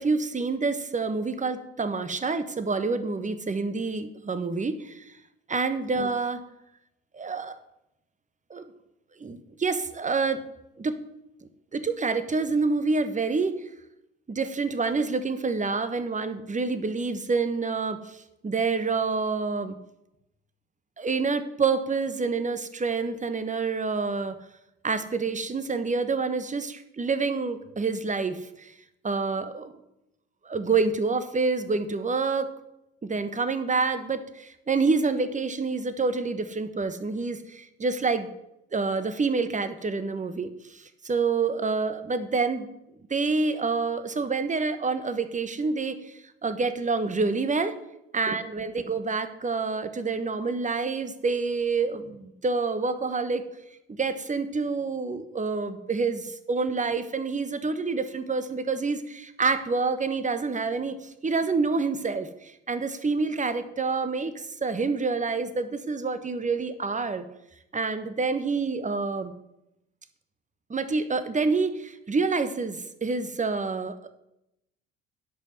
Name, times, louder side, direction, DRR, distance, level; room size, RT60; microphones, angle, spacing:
voice 1, 0.0-5.1 5.5-6.4 7.1-7.6 8.5-8.7 9.2-10.4 10.8-10.9 11.7-13.6 14.3-19.7 21.0-24.3 24.8-28.7 29.0-29.7 30.4-32.5 33.0-38.3 38.7-42.7 43.1-47.7 48.1-53.4 53.9-67.2 67.7-69.3 70.7-74.1, right 4 dB, 20° right, 11 dB, 1.2 m, -27 dB
11.0 x 5.5 x 7.7 m, 0.86 s
hypercardioid pair, 55°, 32 cm